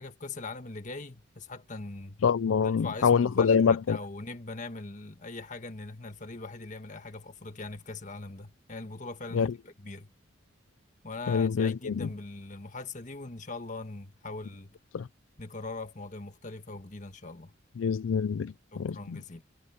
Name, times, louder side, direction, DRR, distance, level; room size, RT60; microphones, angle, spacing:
voice 1, 0.0-2.2 2.6-10.1 11.0-14.7 15.4-17.5 18.7-19.4, left 3 dB, 40° left, 1.6 m, -41 dB
voice 2, 2.2-4.0 9.3-9.5 11.3-12.1 14.9-15.1 17.8-19.2, left 6 dB, 75° left, 0.4 m, -25 dB
head